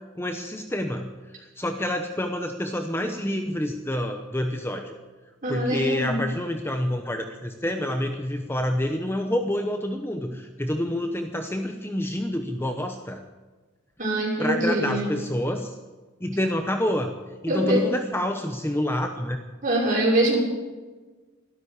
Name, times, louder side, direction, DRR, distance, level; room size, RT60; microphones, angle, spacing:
voice 1, 0.2-1.1 1.6-5.0 5.5-13.2 14.4-15.7 16.2-17.1 17.4-19.4, left 1 dB, 10° left, 5 dB, 0.8 m, -27 dB
voice 2, 5.4-6.2 14.0-15.1 17.5-17.8 19.6-20.4, right 1 dB, 40° right, -4 dB, 6.2 m, -23 dB
13.0 x 12.5 x 8.2 m, 1.3 s
head